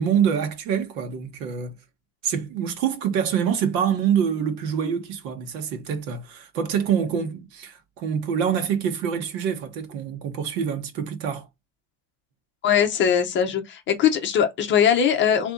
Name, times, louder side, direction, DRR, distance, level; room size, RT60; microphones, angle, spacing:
voice 1, 0.0-1.7 2.2-11.5, right 8 dB, 85° right, 1.5 m, -25 dB
voice 2, 12.6-15.5, left 8 dB, 25° left, 0.7 m, -21 dB
4.1 x 3.4 x 3.8 m
cardioid pair, 180°, 48 cm